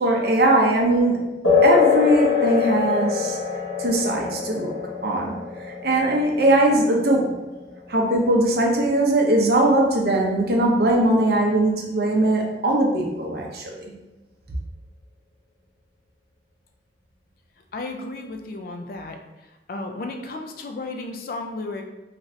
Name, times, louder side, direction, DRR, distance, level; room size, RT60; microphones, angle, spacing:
voice 1, 0.0-1.3 1.6-3.4 3.8-4.7 5.0-5.3 5.8-7.4 7.9-13.9, right 1 dB, 55° right, 0 dB, 0.5 m, -20 dB
sound 1, 1.4-9.5, left 6 dB, 90° left, 1.0 m, -24 dB
voice 2, 17.7-19.2 19.7-21.8, left 2 dB, 50° left, 4 dB, 0.3 m, -33 dB
3.1 x 2.5 x 2.5 m, 1.0 s
head